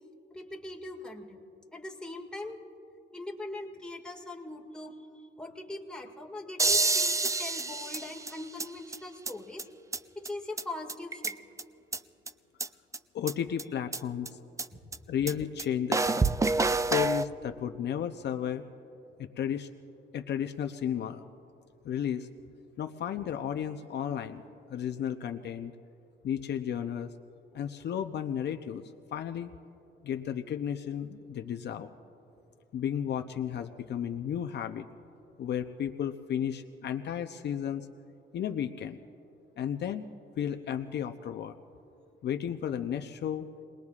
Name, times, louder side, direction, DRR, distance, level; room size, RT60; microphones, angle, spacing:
voice 1, 0.3-1.5 1.7-2.6 3.1-5.0 5.4-9.7 10.2-11.4, left 2 dB, 5° left, -1 dB, 2.0 m, -41 dB
sound 1, 6.6-8.7 8.9-9.0 9.3-9.4 9.6-9.7 9.9-10.0 10.3-10.4 10.6-10.7 10.9-11.6 11.9-12.0 12.3-12.4 12.6-12.7 12.9-13.0 13.3-13.4 13.6-13.7 13.9-14.0 14.3-14.4 14.6-14.7 14.9-15.0 15.3-15.4 15.6-15.7 15.9-17.3, right 3 dB, 15° right, 0.4 m, -27 dB
voice 2, 13.1-14.4 15.1-16.4 16.9-18.6 19.2-19.7 20.1-21.2 21.8-22.3 22.8-25.7 26.2-27.1 27.5-29.5 30.0-31.9 32.7-34.9 35.4-37.9 38.3-39.0 39.6-40.0 40.4-41.5 42.2-43.5, left 9 dB, 60° left, 7 dB, 0.6 m, -33 dB
29.5 x 20.5 x 2.4 m, 3.0 s
cardioid pair, 90°, 20 cm